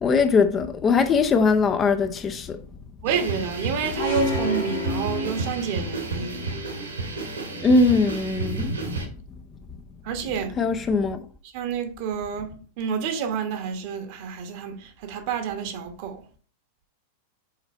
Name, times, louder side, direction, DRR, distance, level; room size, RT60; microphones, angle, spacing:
voice 1, 0.0-2.6 7.6-8.7 10.6-11.2, left 4 dB, 25° left, 0.6 m, -20 dB
voice 2, 3.0-6.4 10.0-10.6 11.5-16.2, right 7 dB, 45° right, 1.1 m, -29 dB
sound 1, 3.0-9.1, right 2 dB, 75° right, 1.8 m, -31 dB
sound 2, 4.0-6.0, left 2 dB, 60° left, 1.6 m, -29 dB
5.8 x 4.3 x 4.3 m
figure-of-eight pair, 90°, 0 cm